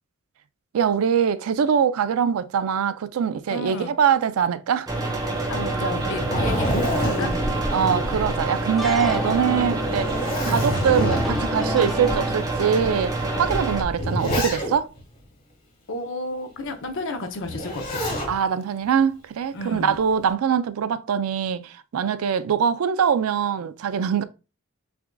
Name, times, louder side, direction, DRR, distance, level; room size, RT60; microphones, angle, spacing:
voice 1, 0.7-4.9 7.7-10.1 10.4-14.9 18.3-24.2, right 7 dB, 80° right, 0.4 m, -23 dB
voice 2, 3.5-3.9 5.5-7.3 15.9-18.0 19.5-20.0, left 1 dB, 65° left, 0.7 m, -32 dB
sound 1, 4.9-13.8, right 2 dB, 20° right, 0.8 m, -27 dB
Zipper (clothing), 5.8-8.7 9.1-9.2 9.8-11.6 12.4-12.5 13.4-15.0 17.4-18.3 19.7-20.2, equal, 45° left, 1.6 m, -27 dB
sound 2, 8.8-12.3, left 1 dB, ahead, 0.3 m, -31 dB
5.8 x 2.5 x 2.2 m
head